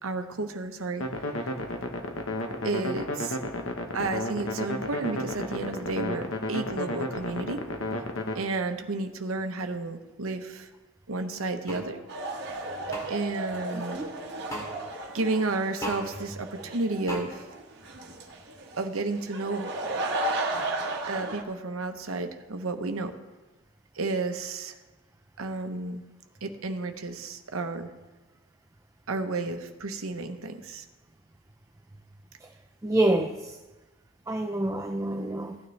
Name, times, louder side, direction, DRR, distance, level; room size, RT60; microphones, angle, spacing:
voice 1, 0.0-1.0 1.4-1.5 2.6-3.4 3.9-7.6 8.3-10.7 11.1-12.0 13.1-14.0 15.1-17.5 18.8-19.7 21.1-23.1 23.9-24.7 25.4-26.0 26.4-27.9 29.1-30.8, right 3 dB, 75° right, 6 dB, 0.9 m, -32 dB
sound 1, 1.0-8.4, left 1 dB, 65° left, 1.1 m, -32 dB
sound 2, 11.7-11.8 12.9-13.0 14.5-14.7 15.8-16.0 17.1-17.2, equal, 15° left, 2.7 m, -34 dB
sound 3, 12.1-21.4, right 2 dB, 50° right, 1.2 m, -34 dB
voice 2, 13.7-14.1 32.4-32.5 32.8-33.6 34.3-35.6, right 1 dB, 15° right, 4 dB, 0.4 m, -27 dB
16.0 x 9.5 x 3.3 m, 1.2 s
head